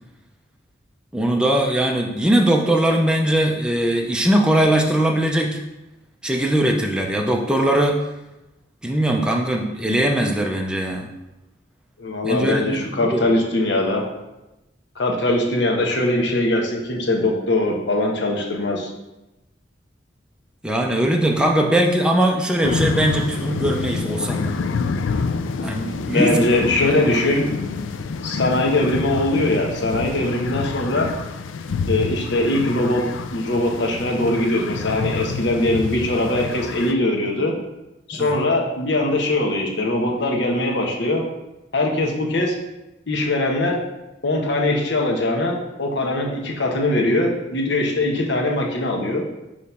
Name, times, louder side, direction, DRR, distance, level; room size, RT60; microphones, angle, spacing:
voice 1, 1.1-5.6 6.2-8.0 8.8-11.1 12.2-13.3 20.6-24.5 25.6-26.4 38.1-38.3, right 1 dB, 5° right, 1 dB, 0.5 m, -20 dB
voice 2, 12.0-14.0 15.0-18.9 26.1-27.5 28.2-31.1 31.9-33.0 33.3-37.5 38.1-41.2 41.7-42.5 43.1-43.8 44.2-49.3, left 1 dB, 65° left, 0 dB, 1.1 m, -21 dB
sound 1, 22.6-36.9, left 4 dB, 80° left, 0.4 m, -27 dB
6.2 x 3.1 x 5.5 m, 0.97 s
head